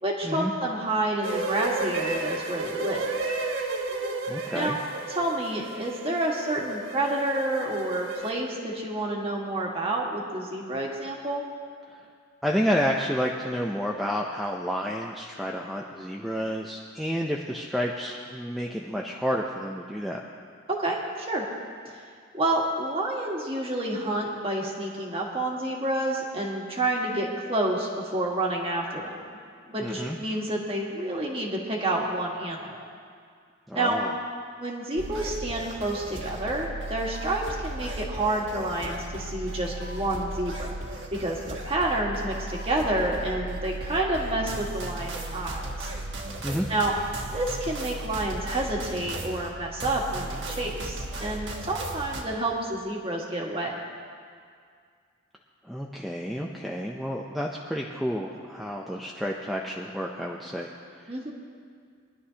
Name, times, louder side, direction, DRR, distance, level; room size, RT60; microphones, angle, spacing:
voice 1, 0.0-3.1 4.5-4.8 5.1-11.4 20.7-21.5 21.9-22.0 22.3-29.2 29.7-32.9 33.7-34.0 34.6-40.7 41.1-41.4 41.6-45.9 46.7-46.9 47.2-53.8 61.1-61.3, right 1 dB, 30° right, -2 dB, 1.6 m, -29 dB
sound 1, 1.2-8.3, right 3 dB, 80° right, 1.2 m, -32 dB
voice 2, 4.3-4.8 12.4-20.2 29.8-30.2 33.7-34.1 46.4-46.7 55.6-60.7, equal, ahead, -2 dB, 0.5 m, -30 dB
sound 2, 35.0-52.2, right 1 dB, 65° right, 1.3 m, -36 dB
22.0 x 11.5 x 2.9 m, 2.1 s
head